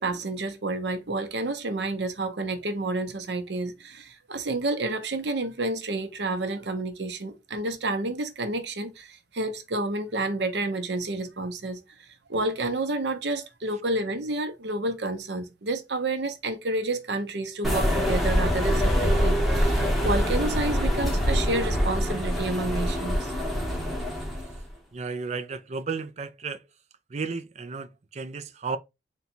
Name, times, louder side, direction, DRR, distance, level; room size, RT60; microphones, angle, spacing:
voice 1, 0.0-11.8 12.3-23.3, right 2 dB, 70° right, 0.8 m, -30 dB
sound 1, 17.6-24.6, equal, ahead, 1.0 m, -25 dB
voice 2, 24.9-26.6 27.1-28.8, right 4 dB, 40° right, 0.4 m, -33 dB
3.9 x 2.3 x 4.3 m
head